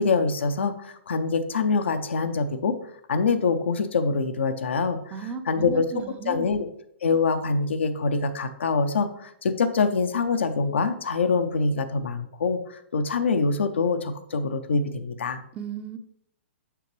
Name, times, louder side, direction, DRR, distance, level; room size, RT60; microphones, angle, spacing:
voice 1, 0.0-2.8 3.1-5.0 5.5-6.7 7.0-15.4, left 4 dB, 65° left, 8 dB, 0.7 m, -25 dB
voice 2, 5.1-6.4 15.5-16.0, right 5 dB, 20° right, 7 dB, 0.7 m, -35 dB
6.8 x 5.8 x 3.1 m, 0.74 s
figure-of-eight pair, 115°, 7 cm